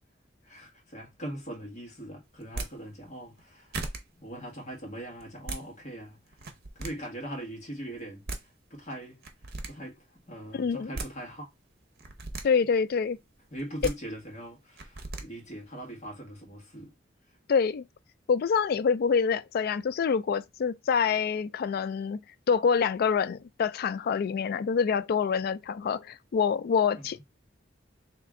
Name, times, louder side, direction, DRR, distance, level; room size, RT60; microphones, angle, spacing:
voice 1, 0.4-3.8 4.1-6.2 6.7-9.2 9.6-11.5 13.5-16.9 27.0-27.2, right 1 dB, 40° left, 1.5 m, -41 dB
sound 1, 2.4-2.7 3.4-3.5 3.7-4.0 5.2-5.6 6.3-6.9 8.0-8.1 8.3-8.4 9.2-9.7 10.7-11.1 12.0-12.4 13.6-13.9 14.8-15.2, right 3 dB, 60° right, 0.7 m, -36 dB
voice 2, 10.5-10.9 12.4-13.2 17.5-17.8 18.3-22.2 22.5-27.2, left 6 dB, 55° left, 0.3 m, -26 dB
3.3 x 2.8 x 3.6 m
head